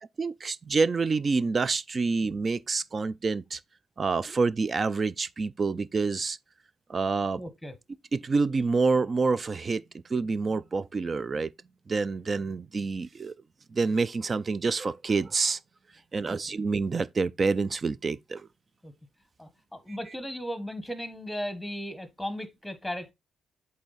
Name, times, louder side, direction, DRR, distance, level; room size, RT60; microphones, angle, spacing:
voice 1, 0.2-3.6 4.0-6.4 6.9-7.4 8.1-9.8 10.1-11.5 11.9-13.3 13.7-15.6 16.1-18.5, right 4 dB, 35° right, 0.4 m, -27 dB
voice 2, 7.4-7.7 16.3-16.4 18.8-18.9 19.4-23.1, equal, 5° left, 1.2 m, -36 dB
8.1 x 3.2 x 4.0 m
cardioid pair, 90°, 0 cm